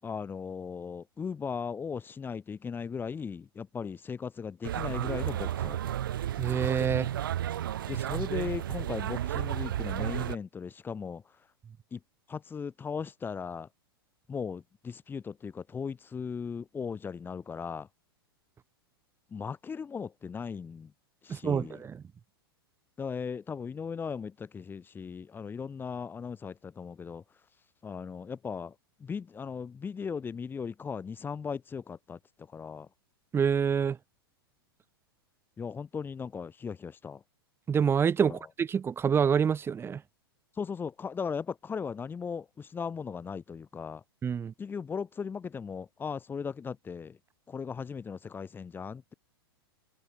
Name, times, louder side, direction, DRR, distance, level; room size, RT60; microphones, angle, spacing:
voice 1, 0.0-6.1 7.9-11.4 11.9-12.0 12.3-13.7 14.3-17.9 19.3-20.9 21.2-21.8 23.0-27.2 27.8-32.9 35.6-37.2 38.3-38.4 40.5-44.0 44.6-47.2 47.5-49.1, left 6 dB, 15° left, 6.8 m, -37 dB
sound 1, 4.6-10.4, right 11 dB, 60° right, 3.9 m, -32 dB
voice 2, 6.4-7.1 21.3-22.0 33.3-34.0 37.7-40.0 44.2-44.5, right 7 dB, 20° right, 6.9 m, -27 dB
figure-of-eight pair, 100°, 13 cm